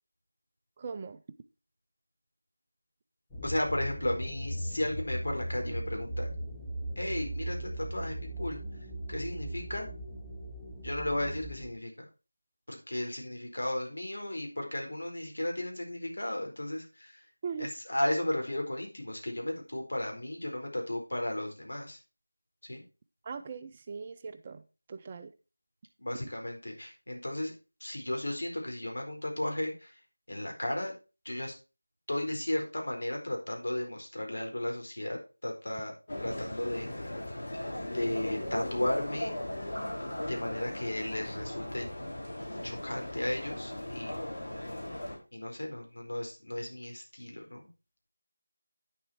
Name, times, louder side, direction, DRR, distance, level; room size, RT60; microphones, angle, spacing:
voice 1, 0.8-1.2 17.4-17.7 23.2-24.6 24.9-25.3, right 5 dB, 20° right, 9 dB, 0.4 m, -40 dB
sound 1, 3.3-11.7, right 1 dB, 5° left, 1.2 m, -38 dB
voice 2, 3.4-6.3 7.0-8.6 9.1-9.9 10.8-12.1 12.7-17.2 17.6-22.0 22.6-22.8 26.0-27.5 27.8-30.0 30.3-30.9 31.2-31.5 32.1-35.9 36.2-36.9 37.8-39.3 40.3-41.9 42.6-44.1 45.3-47.7, left 1 dB, 65° left, 2 dB, 4.5 m, -34 dB
sound 2, 36.1-45.2, left 1 dB, 45° left, 4.0 m, -38 dB
9.9 x 7.2 x 4.5 m, 0.31 s
figure-of-eight pair, 175°, 0 cm